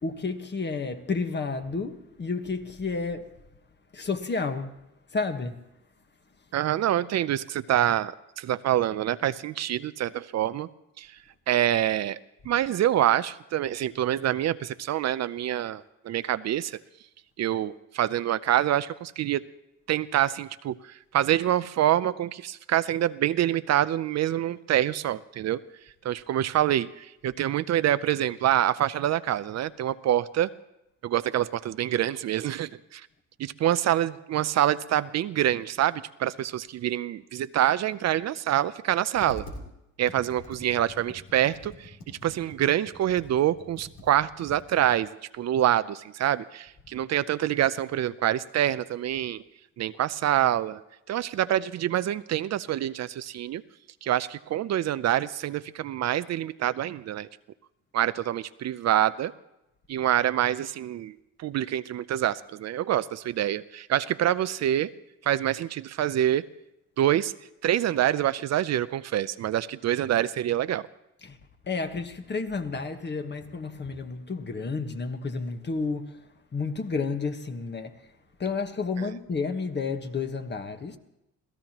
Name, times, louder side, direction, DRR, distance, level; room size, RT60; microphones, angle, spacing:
voice 1, 0.0-3.3 3.9-4.7 5.1-5.6 71.2-71.4 71.7-77.9 78.4-81.0, left 4 dB, 35° left, 1.4 m, -31 dB
voice 2, 6.5-10.7 11.0-11.1 11.5-12.2 12.5-16.8 17.4-19.4 19.9-25.6 26.0-30.5 31.0-33.0 33.4-39.4 40.0-42.0 42.2-49.4 49.8-50.8 51.1-53.6 54.0-57.3 57.9-59.3 59.9-64.9 65.2-66.4 67.0-67.3 67.6-70.8 79.0-79.1, right 12 dB, 60° right, 0.5 m, -26 dB
Computer keyboard, 39.1-39.7 40.1-45.0, left 1 dB, 85° left, 3.5 m, -45 dB
27.0 x 16.5 x 3.0 m
cardioid pair, 90°, 30 cm